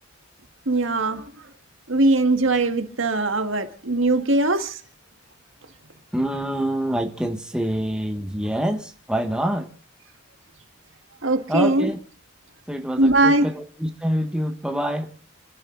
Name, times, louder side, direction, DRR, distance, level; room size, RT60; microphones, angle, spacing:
voice 1, 0.7-1.2 1.9-4.8 11.2-11.9 13.0-13.5, right 2 dB, 70° right, 1.8 m, -20 dB
voice 2, 6.1-9.7 11.5-12.0 12.7-15.1, right 1 dB, 5° right, 1.2 m, -26 dB
29.0 x 12.0 x 3.9 m
head